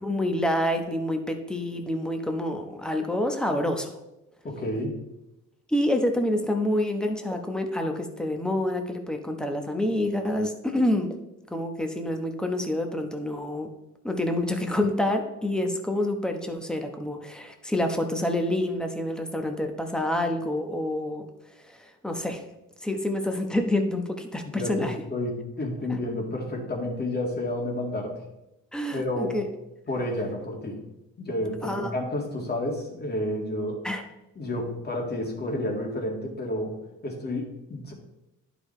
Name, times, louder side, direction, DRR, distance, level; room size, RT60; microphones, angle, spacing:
voice 1, 0.0-3.9 5.7-11.2 11.5-13.7 14.0-21.3 21.7-22.4 22.8-24.9 25.9-26.0 28.7-29.5 31.6-31.9 33.8-34.1, left 1 dB, 5° left, 4 dB, 1.0 m, -27 dB
voice 2, 4.4-5.0 24.5-28.2 28.9-29.4 29.9-30.8 31.2-33.8 34.4-37.9, left 1 dB, 35° left, 0 dB, 2.1 m, -30 dB
10.5 x 5.0 x 3.2 m, 0.92 s
cardioid pair, 90°, 30 cm